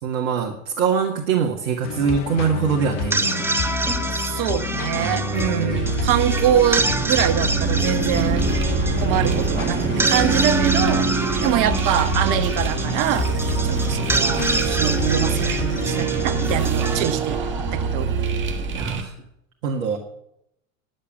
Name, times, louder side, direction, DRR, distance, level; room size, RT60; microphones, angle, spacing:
voice 1, 0.0-3.4 5.0-5.8 16.1-16.3 18.7-19.1 19.6-20.0, right 6 dB, 65° right, 2 dB, 1.8 m, -24 dB
sound 1, 1.8-16.7, left 7 dB, 40° left, 0.9 m, -30 dB
sound 2, 2.9-18.2, right 2 dB, 5° right, 0.8 m, -28 dB
voice 2, 4.1-8.4 9.0-11.1 11.4-13.3 13.6-17.4 17.7-18.2, right 10 dB, 50° right, 12 dB, 1.1 m, -24 dB
sound 3, 5.7-19.0, right 5 dB, 30° right, 1.5 m, -24 dB
10.0 x 7.4 x 8.7 m, 0.80 s
hypercardioid pair, 90°, 41 cm